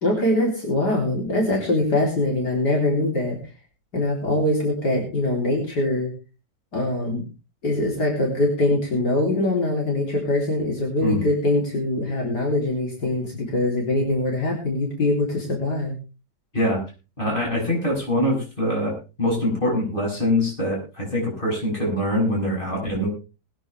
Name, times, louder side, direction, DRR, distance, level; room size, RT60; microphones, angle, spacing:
voice 1, 0.0-3.4 3.9-6.1 6.7-7.3 7.6-15.9, left 1 dB, 70° left, -1 dB, 4.1 m, -23 dB
voice 2, 17.2-23.1, left 1 dB, 30° left, -2 dB, 7.6 m, -24 dB
21.0 x 10.0 x 3.4 m, 0.31 s
omnidirectional pair, 1.8 m